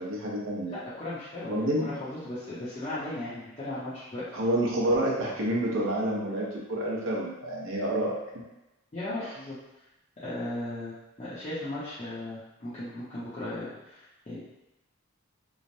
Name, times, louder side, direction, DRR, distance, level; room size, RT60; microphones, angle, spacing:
voice 1, 0.0-0.8 1.5-1.9 4.3-8.2, right 1 dB, 65° right, -3 dB, 0.7 m, -28 dB
voice 2, 0.7-4.2 8.9-9.6 10.2-14.4, left 1 dB, 30° left, -13 dB, 0.6 m, -37 dB
3.1 x 2.1 x 2.6 m, 0.97 s
head